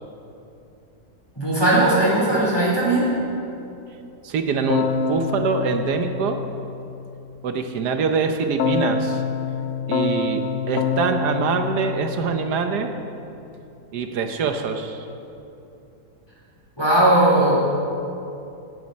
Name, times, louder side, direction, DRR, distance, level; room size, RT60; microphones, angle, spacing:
voice 1, 1.4-3.1 16.8-17.6, right 1 dB, 15° left, -6 dB, 4.0 m, -18 dB
voice 2, 4.2-6.4 7.4-9.2 9.9-12.9 13.9-15.1, right 5 dB, 80° right, 6 dB, 1.4 m, -24 dB
Keyboard (musical), 4.7-7.0 8.6-12.9, left 5 dB, 60° left, 1.2 m, -26 dB
17.5 x 12.5 x 4.2 m, 2.8 s
omnidirectional pair, 1.7 m